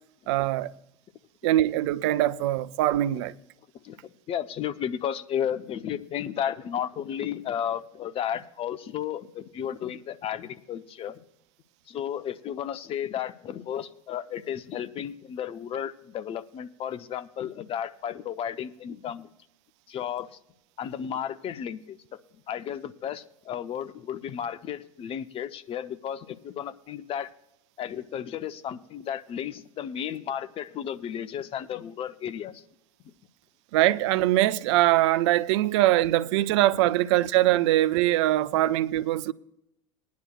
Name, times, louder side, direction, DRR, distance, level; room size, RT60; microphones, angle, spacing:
voice 1, 0.3-0.7 1.4-3.3 33.7-39.3, right 15 dB, 55° right, 0.5 m, -22 dB
voice 2, 3.8-11.2 11.9-19.3 19.9-20.3 20.8-22.0 22.5-27.3 27.8-32.6, left 9 dB, 35° left, 0.7 m, -33 dB
20.5 x 10.5 x 2.4 m
figure-of-eight pair, 80°, 17 cm